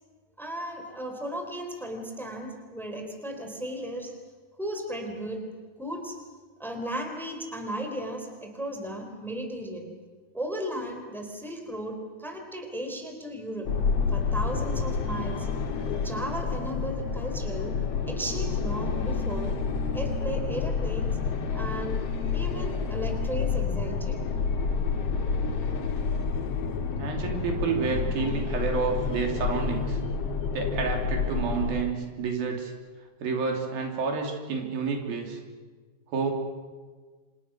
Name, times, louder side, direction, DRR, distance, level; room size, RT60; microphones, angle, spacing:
voice 1, 0.4-4.1 4.6-5.4 5.8-6.2 6.6-9.9 10.3-13.7 14.1-15.5 15.9-17.7 18.1-19.6 19.9-21.2 21.5-22.0 22.3-24.2, right 1 dB, ahead, 3 dB, 3.6 m, -35 dB
sound 1, 13.6-31.8, left 5 dB, 50° left, 2.3 m, -29 dB
voice 2, 27.0-30.0 30.5-32.7 33.2-35.4 36.1-36.3, right 5 dB, 85° right, 2 dB, 4.8 m, -29 dB
29.5 x 26.5 x 6.3 m, 1.4 s
omnidirectional pair, 4.1 m